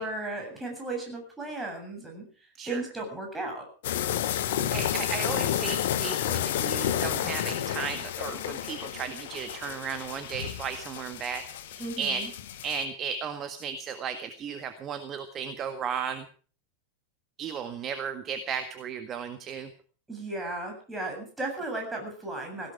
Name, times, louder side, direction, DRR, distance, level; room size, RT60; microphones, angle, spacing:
voice 1, 0.0-2.3 2.7-3.7 11.8-12.3 20.1-22.7, right 2 dB, 10° right, 1 dB, 7.7 m, -35 dB
sound 1, 3.8-12.8, left 11 dB, 55° left, 1.3 m, -31 dB
voice 2, 4.2-12.3 12.6-16.3 17.4-19.7, right 6 dB, 30° right, 8 dB, 1.7 m, -35 dB
17.5 x 17.0 x 4.9 m, 0.40 s
figure-of-eight pair, 90°, 0 cm